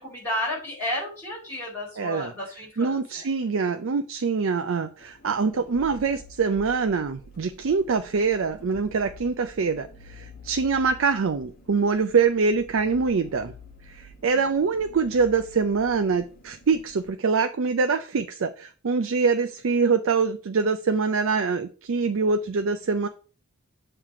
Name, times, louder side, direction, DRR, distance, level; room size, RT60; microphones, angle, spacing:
voice 1, 0.0-3.2 14.3-14.4, left 1 dB, 10° left, -7 dB, 4.3 m, -32 dB
voice 2, 2.0-2.3 2.8-13.5 13.9-23.1, right 5 dB, 65° right, 8 dB, 0.4 m, -24 dB
sound 1, 5.0-17.1, left 2 dB, 40° left, 1.4 m, -48 dB
7.4 x 3.3 x 5.9 m, 0.38 s
head